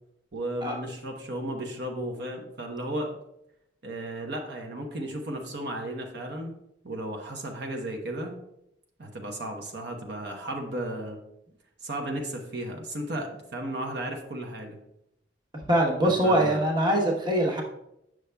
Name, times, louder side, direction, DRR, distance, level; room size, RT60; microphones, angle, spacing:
voice 1, 0.3-3.1 3.8-6.5 6.8-8.4 9.0-11.2 11.8-14.8 16.0-16.6, right 1 dB, 65° right, 2 dB, 0.8 m, -34 dB
voice 2, 15.7-17.6, right 1 dB, 25° right, 0 dB, 1.0 m, -23 dB
8.1 x 6.1 x 2.2 m, 0.81 s
head